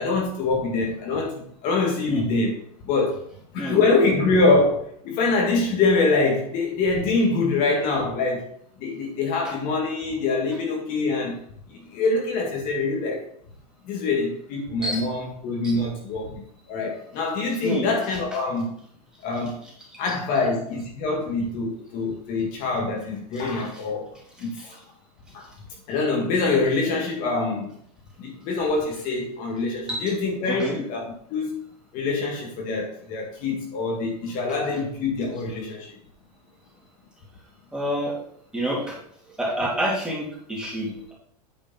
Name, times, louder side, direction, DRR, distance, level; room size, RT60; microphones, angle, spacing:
voice 1, 0.0-2.6 2.8-3.3 3.5-8.5 8.8-11.4 11.7-13.3 13.8-18.8 19.2-19.6 20.0-24.1 24.4-24.6 25.3-25.5 25.9-27.7 28.2-31.5 31.9-36.0, left 3 dB, 40° left, 0 dB, 1.9 m, -24 dB
voice 2, 30.5-30.8 37.7-38.2 38.5-39.0 39.3-41.1, equal, 5° right, -4 dB, 2.9 m, -28 dB
9.1 x 5.0 x 5.5 m, 0.65 s
supercardioid pair, 140°, 21 cm